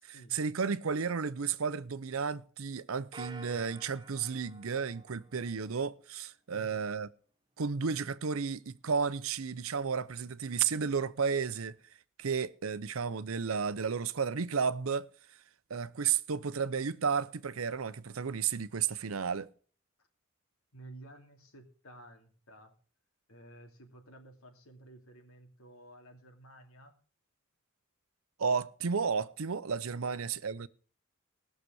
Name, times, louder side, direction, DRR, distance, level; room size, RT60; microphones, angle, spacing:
voice 1, 0.1-7.1 7.6-11.7 12.2-15.1 15.7-19.5 28.4-30.7, right 6 dB, 75° right, 0.6 m, -33 dB
sound 1, 3.1-5.8, right 2 dB, 20° right, 0.9 m, -50 dB
voice 2, 20.7-22.7 23.3-26.9 30.0-30.5, right 1 dB, 85° left, 2.6 m, -53 dB
18.0 x 6.7 x 6.2 m
head